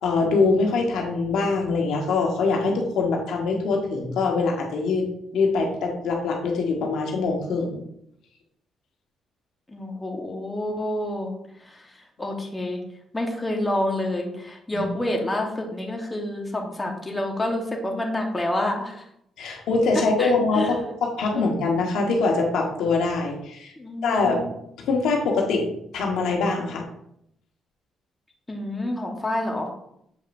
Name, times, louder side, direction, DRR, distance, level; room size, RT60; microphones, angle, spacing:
voice 1, 0.0-5.1 5.3-7.8 14.7-14.9 19.4-23.7 24.0-24.4 24.8-25.7 25.9-26.8, left 3 dB, 80° left, 0 dB, 1.3 m, -23 dB
voice 2, 9.7-11.3 11.6-11.8 12.2-12.8 13.1-19.0 19.9-20.7 21.3-21.5 23.8-24.5 28.5-29.7, left 1 dB, 15° left, 1 dB, 1.2 m, -28 dB
7.2 x 5.0 x 2.6 m, 0.74 s
cardioid pair, 90°, 0 cm